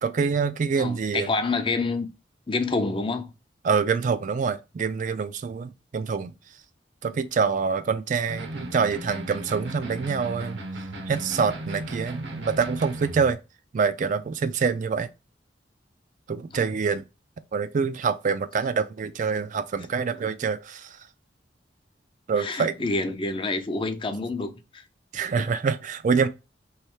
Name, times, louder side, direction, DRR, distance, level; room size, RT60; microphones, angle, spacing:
voice 1, 0.0-1.3 3.6-6.3 7.0-10.6 11.1-13.4 13.7-15.1 16.3-17.0 17.5-20.8 22.3-22.7 25.1-26.3, right 5 dB, 45° right, 0.3 m, -25 dB
voice 2, 0.8-2.1 2.5-3.3 22.4-24.8 25.4-25.5, left 3 dB, 30° left, 0.5 m, -28 dB
sound 1, 8.3-13.3, right 1 dB, 70° right, 0.8 m, -36 dB
3.2 x 3.1 x 4.7 m
head